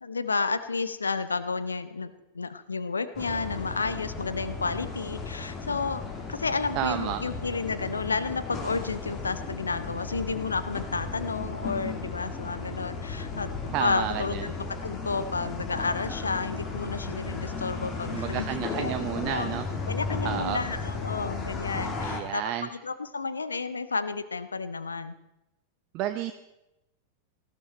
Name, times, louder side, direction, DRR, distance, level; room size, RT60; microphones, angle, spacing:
voice 1, 0.0-6.0 6.3-13.5 13.8-19.0 19.3-19.5 19.9-25.2, left 4 dB, 75° left, 13 dB, 0.9 m, -31 dB
sound 1, 3.1-22.2, left 4 dB, 30° left, 2.6 m, -35 dB
voice 2, 6.8-7.2 13.7-14.5 18.1-19.6 20.2-20.6 22.0-22.7 25.9-26.3, right 12 dB, 40° right, 8 dB, 0.7 m, -31 dB
18.5 x 14.0 x 4.4 m, 0.91 s
figure-of-eight pair, 90°, 0 cm